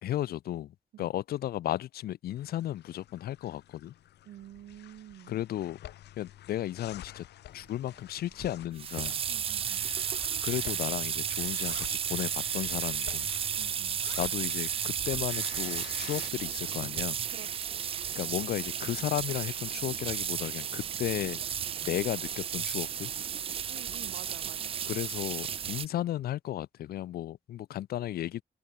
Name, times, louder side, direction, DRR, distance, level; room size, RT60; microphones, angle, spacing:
voice 1, 0.0-3.9 5.3-5.8 6.2-7.3 7.5-9.2 10.4-13.3 14.2-17.2 18.2-21.4 21.8-23.1 24.9-28.4, left 13 dB, 65° left, 0.7 m, -34 dB
sound 1, 2.4-16.3, left 13 dB, 85° left, 1.6 m, -49 dB
voice 2, 4.3-5.4 9.3-9.9 13.5-14.0 17.2-17.8 23.7-24.8, right 12 dB, 90° right, 2.2 m, -49 dB
sound 2, 8.4-25.9, right 8 dB, 35° right, 0.4 m, -33 dB
wide cardioid pair, 180°, 17 cm